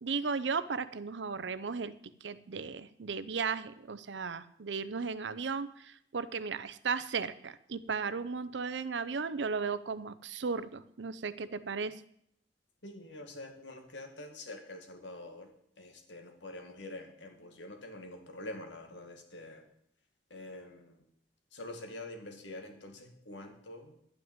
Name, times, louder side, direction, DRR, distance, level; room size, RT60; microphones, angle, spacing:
voice 1, 0.0-1.9 2.2-12.0, right 5 dB, 80° right, 15 dB, 0.6 m, -35 dB
voice 2, 12.8-19.7 20.3-21.0 21.5-24.1, left 1 dB, 90° left, 5 dB, 2.1 m, -46 dB
11.0 x 6.0 x 8.8 m, 0.70 s
head